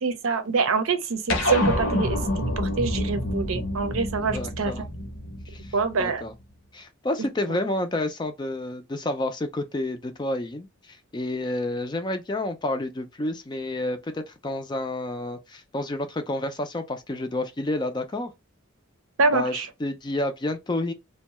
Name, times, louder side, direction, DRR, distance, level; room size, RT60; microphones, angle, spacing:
voice 1, 0.0-4.7 5.7-6.2 19.2-19.7, right 4 dB, 80° right, 0.6 m, -26 dB
sound 1, 1.3-6.0, left 1 dB, 75° left, 0.9 m, -27 dB
voice 2, 4.2-4.9 5.5-6.3 6.7-18.3 19.3-20.9, left 1 dB, 20° left, 0.4 m, -30 dB
2.6 x 2.2 x 2.9 m
head